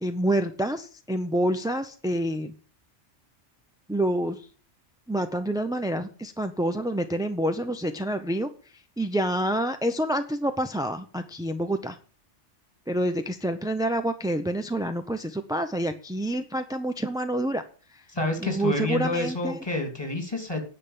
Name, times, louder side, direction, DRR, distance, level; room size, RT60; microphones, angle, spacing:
voice 1, 0.0-2.5 3.9-4.4 5.1-8.5 9.0-12.0 12.9-17.6 17.9-18.0 18.4-19.6, right 1 dB, 5° right, 7 dB, 0.4 m, -27 dB
voice 2, 18.1-20.6, left 2 dB, 20° left, 4 dB, 2.9 m, -28 dB
10.0 x 5.9 x 8.5 m, 0.40 s
omnidirectional pair, 1.2 m